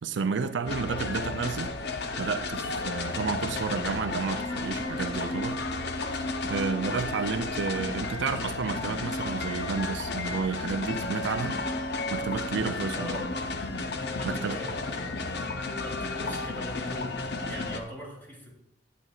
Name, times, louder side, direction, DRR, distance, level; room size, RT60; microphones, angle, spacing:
voice 1, 0.0-1.8 2.2-5.6 6.4-11.6 12.1-13.2 14.3-14.6, right 5 dB, 75° right, 9 dB, 0.5 m, -31 dB
sound 1, 0.7-17.8, left 3 dB, 60° left, 0.7 m, -32 dB
voice 2, 13.0-13.3 14.2-15.1 15.8-17.1 17.5-18.5, left 1 dB, 10° left, -5 dB, 2.9 m, -41 dB
11.0 x 8.4 x 2.4 m, 0.79 s
head